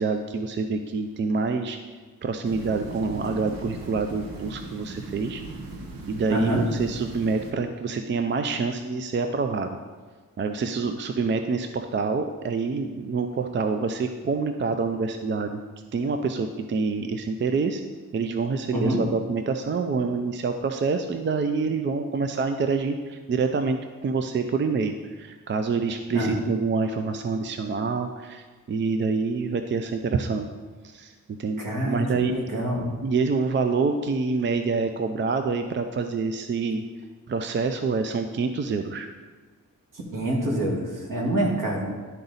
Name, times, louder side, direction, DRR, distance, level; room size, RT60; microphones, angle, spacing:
voice 1, 0.0-1.8 2.2-5.4 6.1-9.8 10.4-15.6 15.9-17.8 18.1-30.5 30.8-31.6 31.9-32.3 33.0-36.8 37.3-39.1, right 4 dB, 35° right, 7 dB, 0.4 m, -26 dB
sound 1, 2.4-7.5, right 2 dB, 90° right, 1.0 m, -38 dB
voice 2, 6.3-6.6 18.7-19.0 26.1-26.4 31.6-32.9 40.1-41.9, right 1 dB, 65° right, -2 dB, 2.0 m, -26 dB
11.5 x 3.9 x 4.0 m, 1.4 s
cardioid pair, 100°, 34 cm